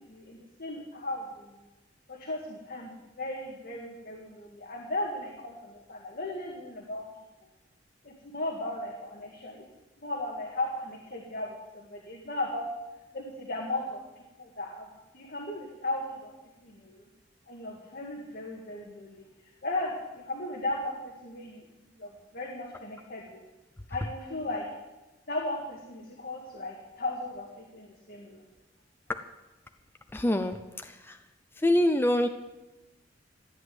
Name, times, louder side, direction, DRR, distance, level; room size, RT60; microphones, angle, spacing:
voice 1, 0.0-1.6 2.1-7.0 8.0-9.6 10.0-12.7 13.1-14.0 14.4-14.9 15.1-16.3 16.6-17.0 17.5-19.2 19.6-21.6 22.0-23.4 23.9-24.6 25.3-28.4, left 2 dB, 55° left, -1 dB, 2.0 m, -36 dB
voice 2, 30.1-31.2 31.6-32.3, left 1 dB, 10° left, 7 dB, 0.6 m, -25 dB
14.0 x 9.5 x 7.9 m, 1.1 s
head